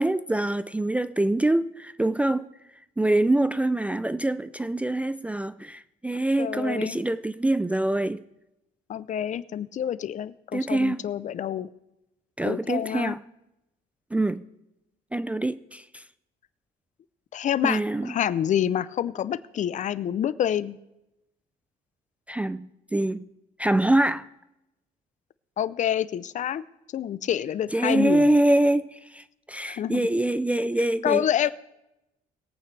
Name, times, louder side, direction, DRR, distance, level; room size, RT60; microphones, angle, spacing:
voice 1, 0.0-2.5 3.0-8.2 10.5-11.0 12.4-13.2 14.1-14.4 15.1-16.0 17.6-18.2 22.3-23.2 23.6-24.3 27.7-31.2, right 1 dB, 10° right, 0.3 m, -25 dB
voice 2, 6.4-7.0 8.9-11.7 12.4-13.2 17.3-20.8 25.6-26.6 26.9-28.3 29.7-30.1 31.0-31.5, left 10 dB, 45° left, 0.5 m, -27 dB
21.5 x 8.7 x 3.3 m
cardioid pair, 110°, 17 cm